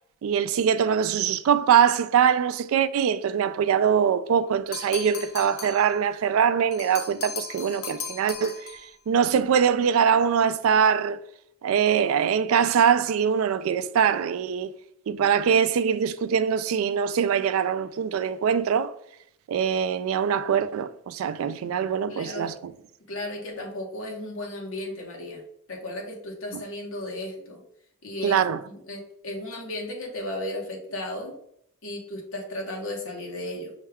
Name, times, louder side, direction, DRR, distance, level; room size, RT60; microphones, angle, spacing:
voice 1, 0.2-11.2 11.6-14.7 15.1-18.9 19.5-22.7 26.5-26.6 28.2-28.6, right 7 dB, 85° right, 0.3 m, -23 dB
sound 1, 4.7-5.9 6.7-8.9, left 7 dB, 90° left, 0.6 m, -37 dB
voice 2, 22.1-22.6 23.1-25.4 25.7-27.6 28.0-28.4 28.7-31.3 31.8-33.7, left 1 dB, 75° left, 1.1 m, -35 dB
5.4 x 2.3 x 3.4 m
head